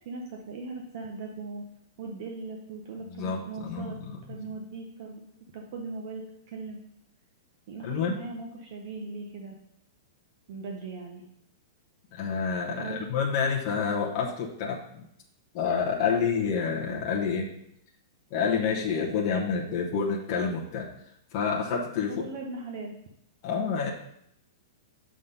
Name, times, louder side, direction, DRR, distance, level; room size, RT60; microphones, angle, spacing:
voice 1, 0.0-1.6 2.0-4.0 4.3-5.2 5.5-6.8 7.7-9.6 10.5-11.2 12.8-13.1 22.1-22.9, right 3 dB, 35° right, 1 dB, 0.7 m, -39 dB
voice 2, 3.1-4.2 7.8-8.2 12.1-15.1 15.5-17.5 18.3-20.9 21.3-22.2 23.4-23.9, left 6 dB, 25° left, -3 dB, 0.9 m, -28 dB
6.7 x 3.8 x 5.5 m, 0.77 s
supercardioid pair, 180°, 2 cm